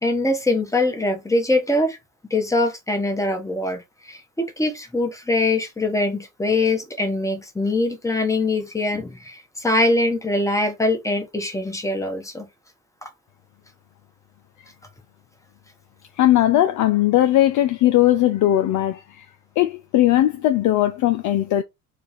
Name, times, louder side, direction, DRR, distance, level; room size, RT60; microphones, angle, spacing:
voice 1, 0.0-2.0 2.3-3.8 4.1-12.5, left 2 dB, 10° left, 1.1 m, -23 dB
voice 2, 16.2-19.3 19.6-21.6, left 13 dB, 50° left, 0.4 m, -18 dB
3.3 x 2.4 x 4.1 m
hypercardioid pair, 60°, 39 cm